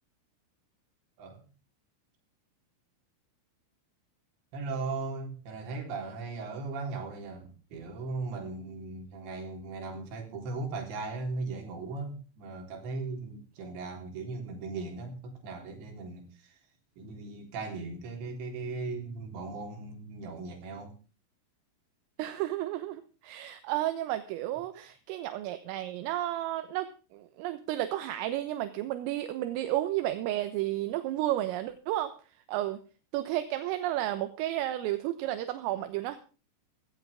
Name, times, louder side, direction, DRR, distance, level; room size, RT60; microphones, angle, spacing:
voice 1, 4.5-16.6 17.0-20.9 24.8-24.9, right 3 dB, 60° right, 5.8 m, -38 dB
voice 2, 22.2-32.1 32.5-32.8 33.1-36.2, right 14 dB, 80° right, 3.7 m, -32 dB
16.5 x 15.5 x 3.6 m
omnidirectional pair, 5.9 m